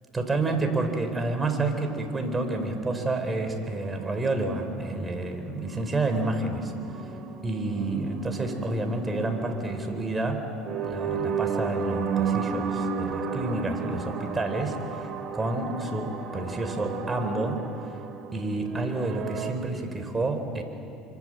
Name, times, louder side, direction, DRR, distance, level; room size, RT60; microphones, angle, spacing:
voice 1, 0.1-6.7 7.4-10.5 10.8-17.6 18.3-20.6, right 2 dB, 20° right, 6 dB, 4.3 m, -29 dB
sound 1, 1.7-19.5, right 5 dB, 50° right, 3.0 m, -34 dB
27.5 x 25.0 x 7.8 m, 2.8 s
supercardioid pair, 95°, 0 cm